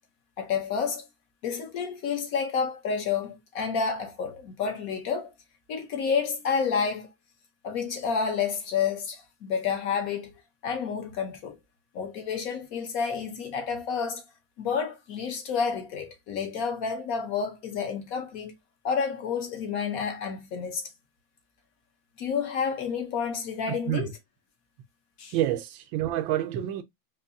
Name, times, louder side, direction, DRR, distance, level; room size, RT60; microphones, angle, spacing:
voice 1, 0.4-1.0 1.4-5.3 5.7-7.1 7.6-10.3 10.6-11.6 11.9-14.2 14.6-18.5 18.8-20.8 22.2-24.1 25.2-25.3, left 6 dB, 60° left, 1.0 m, -29 dB
voice 2, 23.7-24.1 25.3-26.8, right 13 dB, 85° right, 1.4 m, -28 dB
4.2 x 2.7 x 2.6 m
omnidirectional pair, 2.1 m